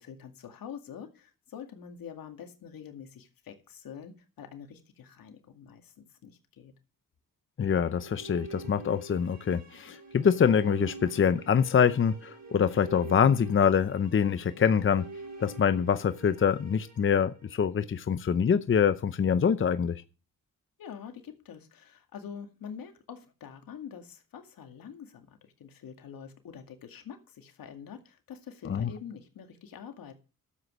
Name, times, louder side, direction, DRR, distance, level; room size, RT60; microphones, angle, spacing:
voice 1, 0.0-6.7 20.8-30.1, left 7 dB, 85° left, 2.1 m, -46 dB
voice 2, 7.6-15.0 15.4-20.0 28.7-28.9, left 7 dB, 35° left, 0.7 m, -25 dB
sound 1, 7.7-17.9, right 3 dB, 60° right, 5.8 m, -46 dB
12.0 x 7.8 x 6.2 m
cardioid pair, 100°, 34 cm